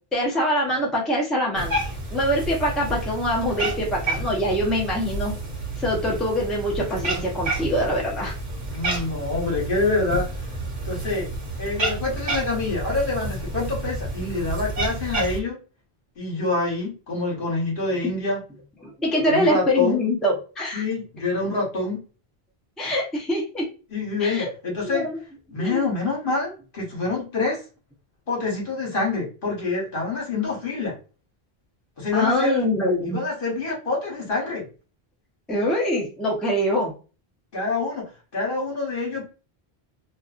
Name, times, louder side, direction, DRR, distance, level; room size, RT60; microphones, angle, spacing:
voice 1, 0.1-1.8 2.1-5.3 5.8-8.4 18.0-18.1 18.8-20.8 22.8-23.7 24.2-24.5 24.8-25.2 25.6-25.9 32.1-33.2 35.5-36.9, equal, ahead, -4 dB, 0.6 m, -24 dB
Cat, 1.5-15.4, right 2 dB, 50° right, 0.9 m, -30 dB
voice 2, 8.7-10.3 10.8-11.3 11.6-15.6 16.2-18.4 19.2-20.0 20.7-22.0 23.9-25.1 25.5-27.6 28.3-30.9 32.0-32.5 33.0-34.6 37.5-38.0 38.3-39.2, left 3 dB, 60° left, -3 dB, 1.2 m, -26 dB
2.6 x 2.3 x 2.4 m, 0.35 s
omnidirectional pair, 1.0 m